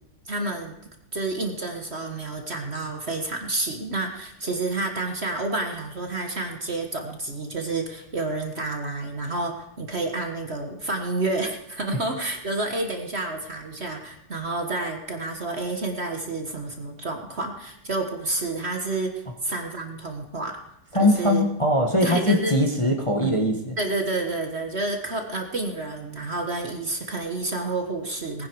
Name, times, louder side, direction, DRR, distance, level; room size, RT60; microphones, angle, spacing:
voice 1, 0.2-0.8 1.1-20.6 21.0-21.4 22.0-22.5 23.2-23.4 23.8-28.5, right 2 dB, 40° right, 4 dB, 1.5 m, -29 dB
voice 2, 20.9-23.7, left 1 dB, 20° left, 2 dB, 1.3 m, -21 dB
19.0 x 10.0 x 4.7 m, 0.85 s
omnidirectional pair, 1.9 m